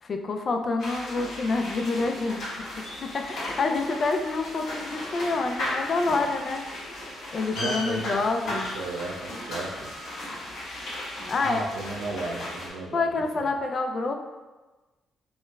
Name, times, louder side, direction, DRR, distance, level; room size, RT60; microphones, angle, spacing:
voice 1, 0.0-6.6 7.3-8.7 11.3-11.6 12.9-14.2, left 3 dB, 45° left, 4 dB, 0.3 m, -27 dB
sound 1, 0.8-12.7, left 1 dB, 70° left, 1.5 m, -36 dB
voice 2, 7.5-9.9 11.4-13.1 13.4-13.5, right 3 dB, 90° right, 0 dB, 0.4 m, -35 dB
4.1 x 2.0 x 2.3 m, 1.2 s
cardioid pair, 90°, 0 cm